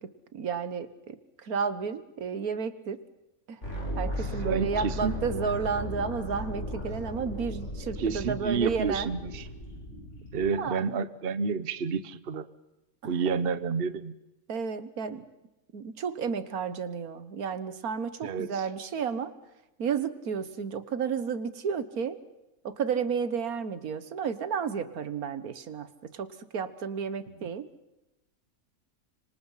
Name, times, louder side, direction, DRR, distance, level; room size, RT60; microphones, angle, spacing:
voice 1, 0.0-3.0 3.5-3.6 4.0-9.1 10.4-10.8 13.0-13.1 14.5-15.3 15.7-19.3 19.8-22.2 22.6-27.7, right 6 dB, 80° right, 13 dB, 1.7 m, -32 dB
sound 1, 3.6-10.5, equal, 50° left, 8.0 m, -36 dB
voice 2, 4.4-5.2 8.0-9.4 10.3-12.4 13.0-14.1 18.2-18.6, right 5 dB, 45° right, 14 dB, 1.1 m, -30 dB
26.5 x 25.0 x 5.7 m, 0.95 s
omnidirectional pair, 1.5 m